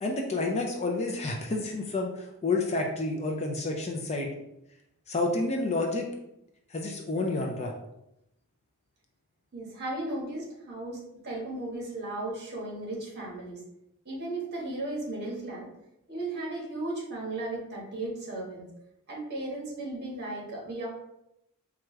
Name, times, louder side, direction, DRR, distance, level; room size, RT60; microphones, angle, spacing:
voice 1, 0.0-4.3 5.1-6.1 6.7-7.7, left 2 dB, 30° left, 1 dB, 0.5 m, -29 dB
voice 2, 9.5-13.6 14.0-15.7 16.1-18.7 19.1-20.9, right 2 dB, 50° right, -3 dB, 1.3 m, -35 dB
4.6 x 2.4 x 3.2 m, 0.84 s
head